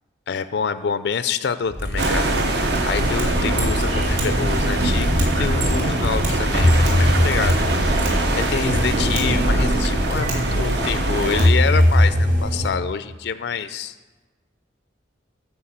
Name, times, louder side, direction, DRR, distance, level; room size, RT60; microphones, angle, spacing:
voice 1, 0.3-2.3 2.6-13.9, left 6 dB, 65° left, 12 dB, 0.4 m, -27 dB
Mechanisms, 1.7-12.2, equal, 40° right, 2.4 m, -30 dB
sound 1, 2.0-11.5, right 1 dB, 60° right, 0.8 m, -22 dB
sound 2, 3.0-12.7, left 1 dB, 80° right, 2.9 m, -22 dB
12.5 x 4.6 x 7.3 m, 1.3 s
head